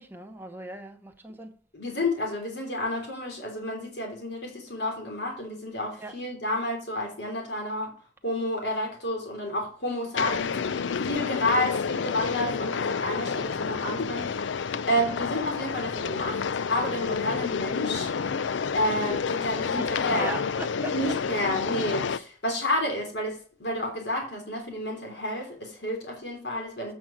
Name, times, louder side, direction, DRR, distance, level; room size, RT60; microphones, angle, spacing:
voice 1, 0.0-1.5 6.0-6.1 19.7-20.9, right 2 dB, 10° right, 1.0 m, -38 dB
voice 2, 1.7-7.9 8.2-18.1 18.7-20.4 20.9-26.9, left 1 dB, 65° left, 3.2 m, -30 dB
sound 1, 10.2-22.2, left 6 dB, 85° left, 0.5 m, -29 dB
7.7 x 6.0 x 5.0 m
head